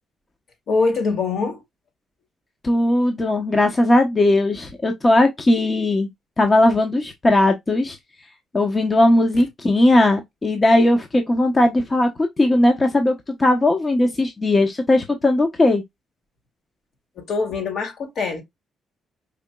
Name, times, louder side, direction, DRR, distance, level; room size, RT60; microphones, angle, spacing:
voice 1, 0.7-1.6 17.2-18.4, left 4 dB, 65° left, 1.9 m, -23 dB
voice 2, 2.6-6.1 6.4-8.0 8.5-12.1 12.4-15.8, left 1 dB, 25° left, 0.8 m, -18 dB
5.0 x 2.8 x 2.2 m
cardioid pair, 90°, 0 cm